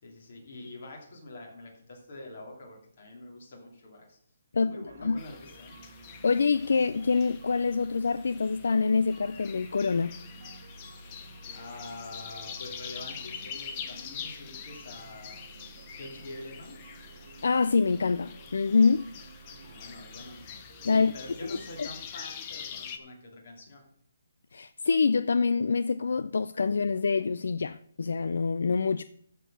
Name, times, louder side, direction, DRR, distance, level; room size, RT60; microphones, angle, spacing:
voice 1, 0.0-4.2 4.5-5.8 11.5-15.4 16.0-16.9 19.6-20.4 20.8-23.8, left 2 dB, 35° left, 2.8 m, -45 dB
sound 1, 4.9-22.1, right 3 dB, 40° right, 1.2 m, -51 dB
sound 2, 5.2-23.0, left 7 dB, 15° left, 0.6 m, -45 dB
voice 2, 6.2-10.1 17.4-19.1 20.8-21.1 21.8-21.9 24.5-29.0, left 4 dB, 60° left, 0.3 m, -25 dB
13.0 x 4.5 x 6.2 m
hypercardioid pair, 180°, 0 cm